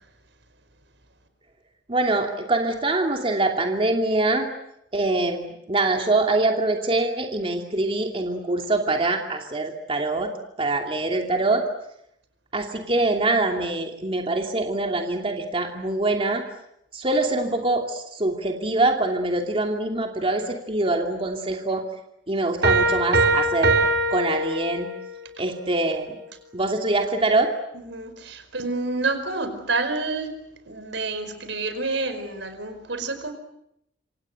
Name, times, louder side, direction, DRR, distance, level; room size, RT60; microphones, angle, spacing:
voice 1, 1.9-4.5 4.9-10.3 10.6-11.6 12.5-16.4 16.9-21.9 22.3-23.8 24.1-24.9 25.4-26.2 26.5-27.5, right 2 dB, 30° right, 2 dB, 2.8 m, -24 dB
sound 1, 22.6-25.1, right 2 dB, 65° right, 3.8 m, -21 dB
voice 2, 27.7-30.3 30.7-33.3, right 3 dB, 85° right, 9 dB, 5.0 m, -28 dB
27.0 x 26.5 x 8.0 m, 0.79 s
head